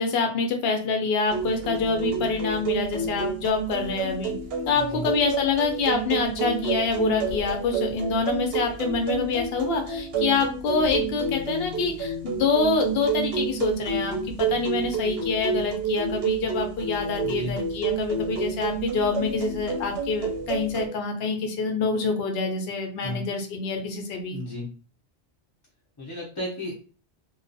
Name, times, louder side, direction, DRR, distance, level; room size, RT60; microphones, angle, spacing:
voice 1, 0.0-4.3 4.7-24.4, left 4 dB, 65° left, 4 dB, 0.8 m, -26 dB
sound 1, 1.3-20.9, right 5 dB, 65° right, 0.8 m, -29 dB
voice 2, 4.7-5.1 17.2-17.5 23.0-23.2 24.3-24.7 26.0-26.8, left 1 dB, 25° left, -6 dB, 0.5 m, -33 dB
2.3 x 2.3 x 2.5 m, 0.38 s
omnidirectional pair, 1.1 m